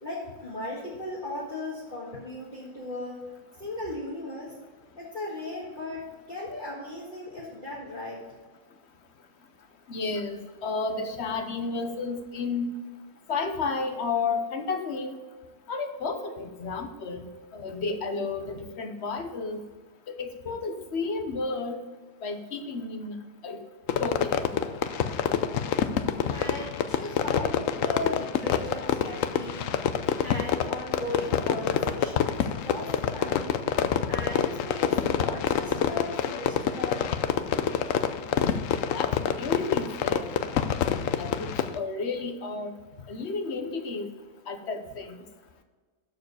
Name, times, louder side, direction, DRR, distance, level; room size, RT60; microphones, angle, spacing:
voice 1, 0.0-3.2 3.6-4.5 5.0-8.2 26.2-29.7 30.2-33.7 34.1-37.1, left 2 dB, 35° left, -7 dB, 1.9 m, -37 dB
voice 2, 9.9-12.7 13.3-15.2 15.7-17.3 17.5-19.6 20.1-21.8 22.2-23.2 23.4-23.6 24.0-24.5 38.9-39.1 39.4-40.3 41.2-42.7 43.1-44.1 44.5-45.2, left 4 dB, 50° left, 7 dB, 1.2 m, -32 dB
Fireworks, 23.9-41.8, left 8 dB, 70° left, 1.0 m, -27 dB
13.0 x 4.8 x 4.8 m, 1.4 s
omnidirectional pair, 1.5 m